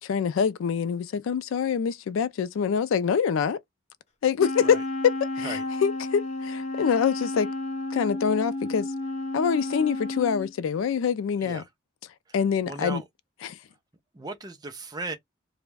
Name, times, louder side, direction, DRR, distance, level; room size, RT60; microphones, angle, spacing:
voice 1, 0.0-3.6 4.2-4.8 5.0-7.5 7.9-8.9 9.3-11.6 12.3-13.0 13.4-13.6, left 7 dB, 85° left, 0.3 m, -25 dB
Wind instrument woodwind instrument, 4.4-10.5, left 2 dB, 35° left, 0.5 m, -32 dB
voice 2, 12.7-13.0 14.1-15.2, right 3 dB, 20° right, 0.4 m, -36 dB
2.3 x 2.1 x 3.2 m
head